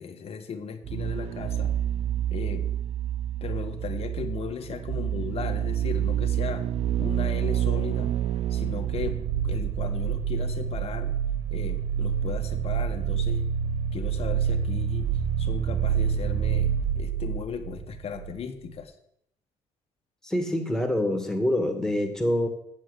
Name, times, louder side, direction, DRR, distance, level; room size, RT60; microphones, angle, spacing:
voice 1, 0.0-1.7 2.3-2.7 3.4-6.7 7.0-8.1 8.5-9.2 9.4-11.1 11.5-13.5 13.9-18.9, left 6 dB, 50° left, 6 dB, 1.5 m, -36 dB
sound 1, 0.8-18.4 18.6-18.7, right 9 dB, 60° right, 0.6 m, -28 dB
voice 2, 20.2-22.5, left 1 dB, 5° left, 3 dB, 2.1 m, -26 dB
7.7 x 7.2 x 8.1 m, 0.74 s
cardioid pair, 85°, 13 cm